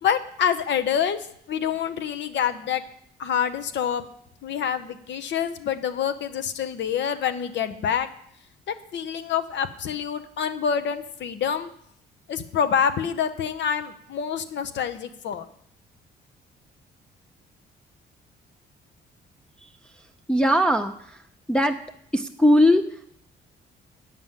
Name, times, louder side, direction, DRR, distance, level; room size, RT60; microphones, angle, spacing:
voice 1, 0.0-2.8 3.2-4.0 4.4-8.1 8.7-11.7 12.3-15.5, left 8 dB, 65° left, 9 dB, 0.7 m, -26 dB
voice 2, 20.3-21.2 21.5-21.8 22.1-23.1, left 1 dB, 5° left, 4 dB, 0.5 m, -20 dB
9.0 x 5.1 x 7.3 m, 0.68 s
cardioid pair, 90°, 20 cm